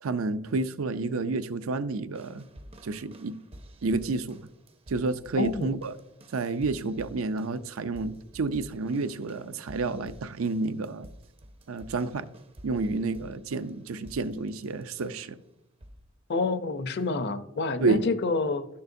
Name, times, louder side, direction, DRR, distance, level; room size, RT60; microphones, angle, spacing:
voice 1, 0.0-2.5 2.8-3.4 3.8-4.4 4.9-5.9 6.3-11.1 11.7-12.3 12.6-15.4 17.8-18.0, right 3 dB, 75° right, 0.5 m, -30 dB
sound 1, 2.2-15.4 15.8-16.2 17.0-17.1, equal, 30° right, 0.6 m, -50 dB
voice 2, 5.4-5.7 16.3-18.7, left 3 dB, 55° left, 0.6 m, -28 dB
12.0 x 6.7 x 2.6 m
head